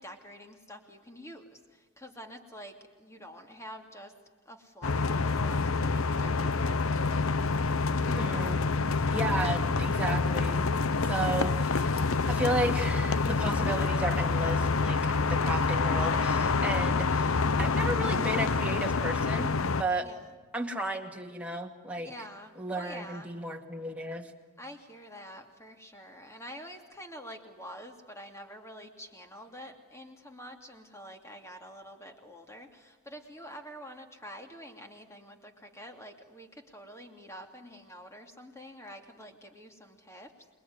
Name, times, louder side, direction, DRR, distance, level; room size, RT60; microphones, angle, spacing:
voice 1, 0.0-4.1 4.4-6.8 9.2-9.7 20.0-20.4 22.0-23.3 24.6-40.3, equal, 15° left, 4 dB, 2.7 m, -47 dB
sound 1, 4.8-19.8, left 4 dB, 70° left, 0.8 m, -27 dB
voice 2, 8.0-8.6 9.1-10.6 11.1-20.1 20.5-22.1 22.6-24.3, right 1 dB, 5° right, 1 dB, 2.2 m, -34 dB
27.5 x 21.5 x 9.6 m, 1.3 s
head